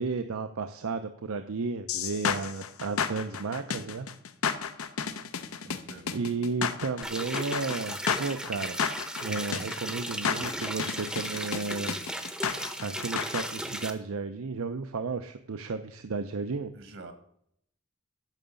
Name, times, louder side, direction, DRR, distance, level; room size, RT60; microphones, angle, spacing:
voice 1, 0.0-4.1 6.1-8.8 9.2-12.0 12.8-16.7, right 4 dB, 85° right, 8 dB, 0.6 m, -33 dB
sound 1, 1.9-13.5, left 6 dB, 85° left, 0.7 m, -32 dB
voice 2, 5.7-6.2 16.7-17.1, right 2 dB, 65° right, 8 dB, 1.4 m, -46 dB
sound 2, 7.0-13.9, right 1 dB, 5° right, 0.7 m, -36 dB
9.1 x 6.3 x 7.0 m, 0.69 s
head